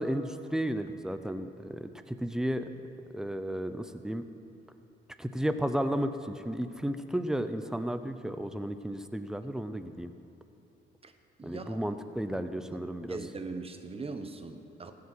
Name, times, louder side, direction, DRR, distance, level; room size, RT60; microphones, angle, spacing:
voice 1, 0.0-2.7 3.1-4.2 5.2-10.1 11.4-13.2, right 1 dB, 5° right, 9 dB, 0.7 m, -33 dB
voice 2, 11.4-11.8 13.1-14.9, right 4 dB, 30° right, 7 dB, 1.0 m, -40 dB
15.0 x 8.5 x 6.2 m, 2.7 s
cardioid pair, 90°, 20 cm